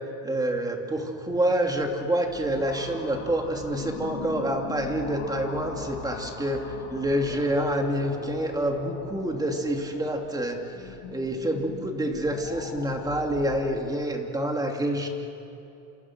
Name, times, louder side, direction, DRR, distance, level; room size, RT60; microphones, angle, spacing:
voice 1, 0.2-15.1, right 1 dB, 10° right, 3 dB, 2.9 m, -27 dB
sound 1, 1.3-13.8, left 5 dB, 55° left, 6.8 m, -41 dB
28.5 x 27.5 x 6.3 m, 2.8 s
supercardioid pair, 135°, 42 cm